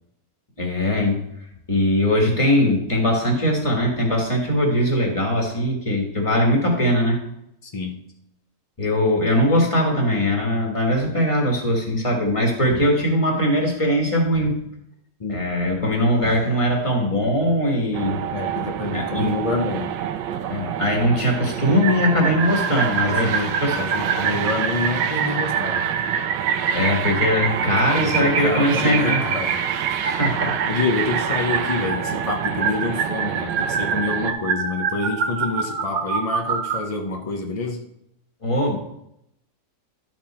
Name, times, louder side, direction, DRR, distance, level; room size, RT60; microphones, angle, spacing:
voice 1, 0.6-1.2 1.7-7.2 8.8-14.6 15.3-18.2 18.9-19.3 20.5-23.3 23.6-23.8 26.7-29.2 30.0-30.6 38.4-38.8, equal, 20° left, 0 dB, 1.6 m, -21 dB
voice 2, 7.6-8.0 15.2-15.4 18.3-20.0 23.0-25.9 28.0-29.6 30.7-37.8, left 3 dB, 70° left, 2 dB, 0.3 m, -27 dB
sound 1, 17.9-34.3, right 10 dB, 80° right, 1.3 m, -29 dB
sound 2, 21.8-36.8, right 6 dB, 60° right, 1.1 m, -26 dB
11.5 x 4.5 x 4.3 m, 0.79 s
omnidirectional pair, 1.9 m